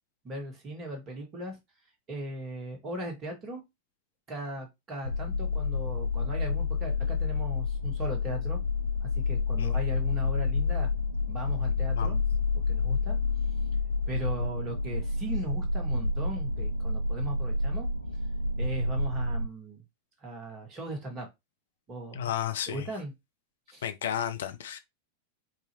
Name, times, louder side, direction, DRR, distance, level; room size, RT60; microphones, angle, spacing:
voice 1, 0.2-1.6 2.1-3.6 4.3-8.6 9.0-10.9 11.3-12.2 12.6-13.2 14.1-17.9 18.6-19.8 20.2-21.3 21.9-22.3 22.7-23.1 23.7-23.9, right 1 dB, 30° right, 1.8 m, -38 dB
sound 1, 5.0-19.5, left 3 dB, 85° right, 0.3 m, -29 dB
voice 2, 22.2-22.9 23.8-24.8, left 10 dB, 60° left, 0.5 m, -32 dB
4.8 x 2.7 x 3.0 m
figure-of-eight pair, 90°, 0 cm